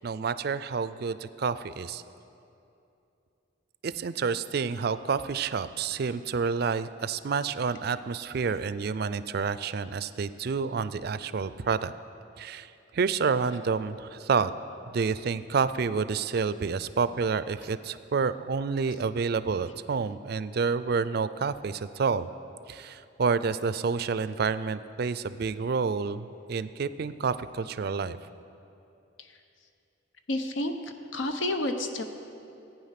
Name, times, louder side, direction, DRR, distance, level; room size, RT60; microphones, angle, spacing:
voice 1, 0.0-2.0 3.8-11.9 12.4-14.5 14.9-22.3 22.7-28.2, right 5 dB, 55° right, 14 dB, 0.4 m, -29 dB
voice 2, 30.3-30.7 31.1-32.0, left 1 dB, 90° left, 7 dB, 0.9 m, -29 dB
14.5 x 9.2 x 5.8 m, 2.7 s
head